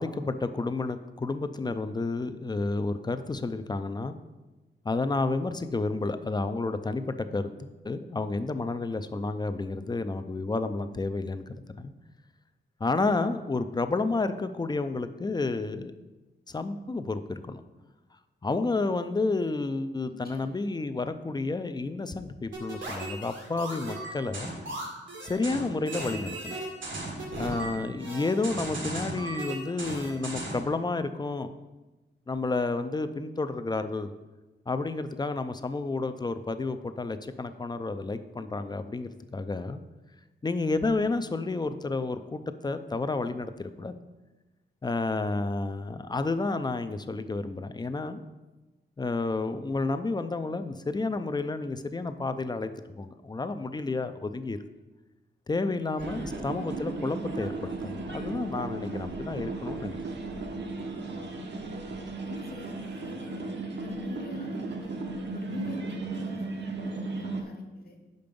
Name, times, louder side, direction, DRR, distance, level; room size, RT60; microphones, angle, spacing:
voice 1, 0.0-4.2 4.8-11.9 12.8-15.9 16.5-17.6 18.4-24.6 25.2-26.6 27.4-31.5 32.3-34.1 34.7-39.8 40.4-43.9 44.8-48.2 49.0-52.7 53.0-54.6 55.5-60.0, left 3 dB, 20° left, 10 dB, 0.4 m, -31 dB
voice 2, 20.1-20.5 27.5-27.8 56.0-56.1 62.2-63.4 63.8-65.0 65.3-68.0, left 1 dB, 55° left, 3 dB, 1.2 m, -44 dB
sound 1, 22.5-30.7, right 2 dB, 85° right, 1.7 m, -36 dB
sound 2, 56.0-67.4, right 3 dB, 65° right, 0.9 m, -35 dB
5.7 x 5.2 x 5.2 m, 1.1 s
wide cardioid pair, 100°, 19 cm